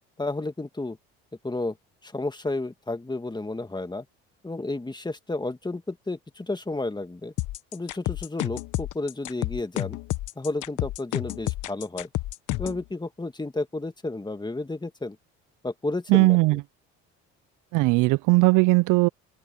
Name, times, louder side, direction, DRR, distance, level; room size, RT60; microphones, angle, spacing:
voice 1, 0.2-1.0 1.4-1.8 2.0-4.1 4.4-7.3 7.7-10.0 10.4-12.1 12.6-15.2 15.6-16.6, left 2 dB, 15° left, 2.2 m, -32 dB
sound 1, 7.4-12.8, left 17 dB, 70° left, 1.2 m, -30 dB
voice 2, 16.1-16.6 17.7-19.1, right 23 dB, 70° right, 0.4 m, -19 dB
open air
supercardioid pair, 75°, 32 cm